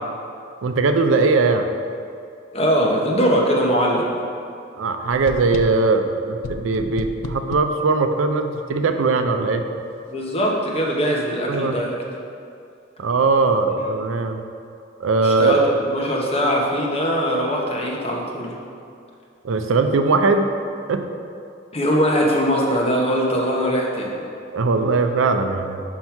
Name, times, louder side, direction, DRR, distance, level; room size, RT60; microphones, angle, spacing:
voice 1, 0.6-1.7 4.8-9.7 11.5-11.8 13.0-14.4 15.0-15.6 19.4-20.5 20.9-21.0 24.5-25.8, right 3 dB, 80° right, 7 dB, 0.5 m, -20 dB
voice 2, 2.5-4.1 10.1-12.0 15.2-18.5 21.7-24.2, equal, 30° left, -2 dB, 1.0 m, -21 dB
sound 1, 5.1-5.9 6.4-7.8, left 3 dB, 80° left, 0.4 m, -33 dB
5.8 x 5.3 x 4.6 m, 2.5 s
head